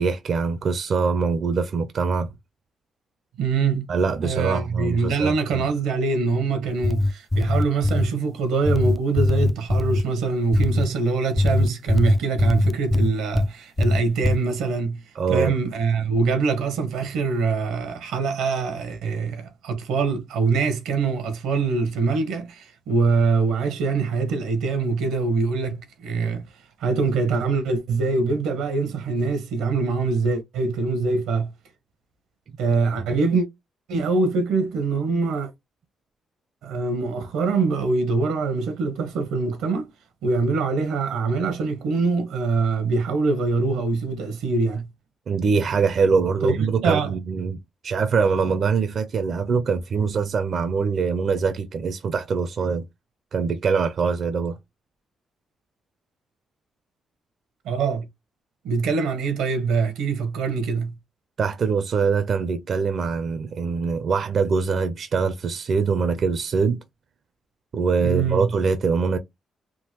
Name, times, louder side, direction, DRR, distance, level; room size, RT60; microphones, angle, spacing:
voice 1, 0.0-2.3 3.9-5.7 15.1-15.5 33.0-33.2 45.3-52.8 53.3-54.6 61.4-66.8 67.7-69.2, right 5 dB, 60° right, 0.5 m, -23 dB
voice 2, 3.4-3.8 4.1-15.0 15.3-26.4 26.8-31.5 32.6-33.5 33.9-35.5 36.6-39.9 40.2-44.9 46.4-46.5 46.8-47.1 57.6-58.1 58.6-60.9 68.0-68.5, right 4 dB, 90° right, 0.9 m, -24 dB
sound 1, 6.7-8.1 8.7-10.1 10.5-10.9 11.4-13.5 13.8-14.4, left 2 dB, 15° left, 0.3 m, -21 dB
3.6 x 2.1 x 2.9 m
cardioid pair, 75°, 0 cm